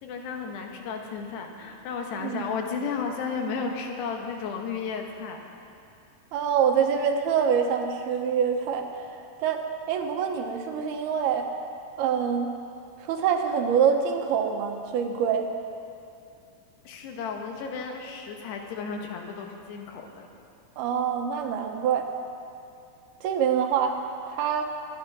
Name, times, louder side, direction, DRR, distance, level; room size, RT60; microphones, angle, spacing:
voice 1, 0.0-5.4 16.9-20.3, left 5 dB, 85° left, 2 dB, 3.5 m, -33 dB
voice 2, 6.3-8.9 9.4-11.5 12.0-12.5 13.0-15.5 20.8-22.1 23.2-24.0 24.3-24.7, right 7 dB, 75° right, 4 dB, 2.9 m, -25 dB
22.5 x 10.0 x 6.1 m, 2.5 s
omnidirectional pair, 4.7 m